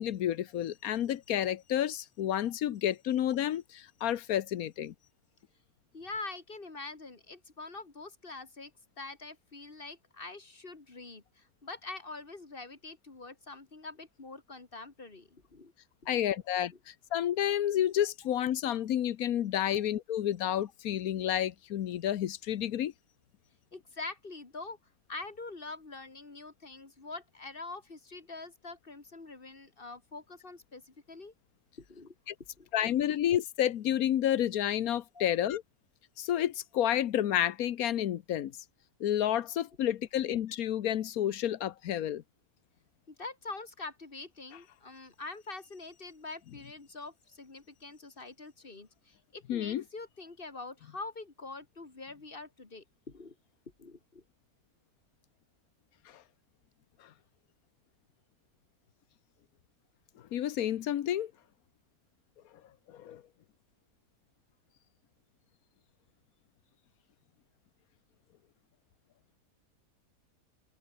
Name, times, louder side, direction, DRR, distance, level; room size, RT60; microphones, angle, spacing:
voice 1, 0.0-4.9 16.1-22.9 32.3-32.4 32.7-35.6 36.2-38.5 39.0-42.2 49.5-49.8 60.3-61.3 62.9-63.2, left 11 dB, 70° left, 1.3 m, -30 dB
voice 2, 5.9-8.7 9.0-15.7 16.3-16.4 23.7-24.8 25.1-31.3 31.9-32.1 32.6-32.9 35.1-35.3 43.1-53.4 53.8-54.2, left 3 dB, 35° left, 2.5 m, -45 dB
omnidirectional pair, 1.6 m